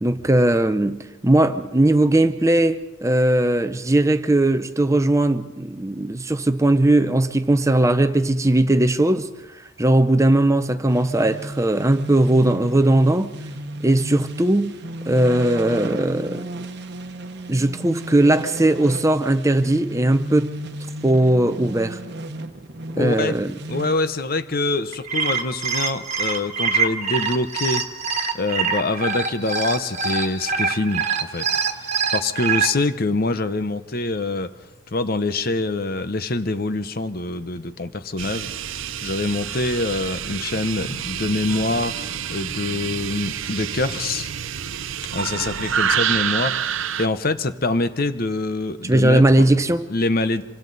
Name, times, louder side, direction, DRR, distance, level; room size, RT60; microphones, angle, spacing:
voice 1, 0.0-13.4 13.8-16.5 17.5-20.6 21.0-22.0 23.0-23.5 48.8-49.9, right 1 dB, 15° right, 0.6 m, -19 dB
sound 1, 10.9-24.0, right 1 dB, 55° right, 1.1 m, -34 dB
voice 2, 23.0-23.4 23.7-27.9 28.3-34.5 34.9-44.3 45.1-46.6 47.0-49.2 49.9-50.4, left 2 dB, 45° left, 0.9 m, -25 dB
sound 2, 24.9-32.7, right 5 dB, 35° right, 1.6 m, -24 dB
sound 3, 38.2-47.1, right 8 dB, 75° right, 0.7 m, -27 dB
26.5 x 24.5 x 4.1 m
head